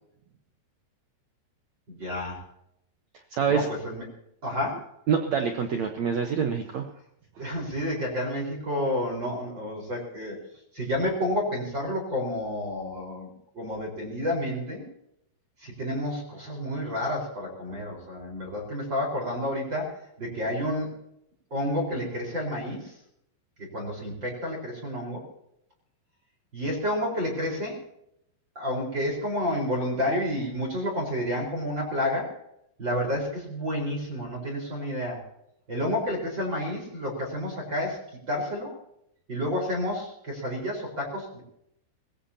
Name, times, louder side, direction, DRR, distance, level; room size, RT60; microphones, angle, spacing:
voice 1, 1.9-2.4 3.5-4.0 4.4-4.9 7.4-10.4 10.7-14.8 15.6-21.0 21.5-22.9 23.6-25.3 26.5-27.8 28.5-32.4 32.8-35.2 35.7-38.7 39.3-41.4, left 1 dB, 25° right, -3 dB, 4.8 m, -30 dB
voice 2, 3.3-3.7 5.1-6.9, right 6 dB, 80° right, 4 dB, 1.6 m, -26 dB
21.0 x 17.0 x 2.9 m, 0.75 s
omnidirectional pair, 5.0 m